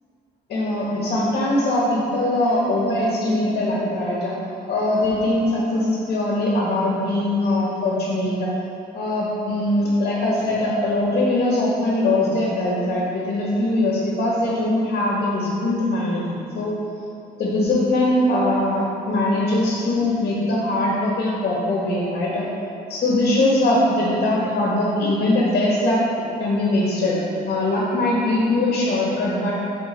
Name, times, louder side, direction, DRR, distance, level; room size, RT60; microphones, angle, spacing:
voice 1, 0.5-4.3 4.7-8.5 8.9-16.2 16.5-16.7 17.4-22.5 22.9-29.5, left 1 dB, 55° left, -4 dB, 1.5 m, -21 dB
7.8 x 4.4 x 4.5 m, 2.7 s
cardioid pair, 135°, 18 cm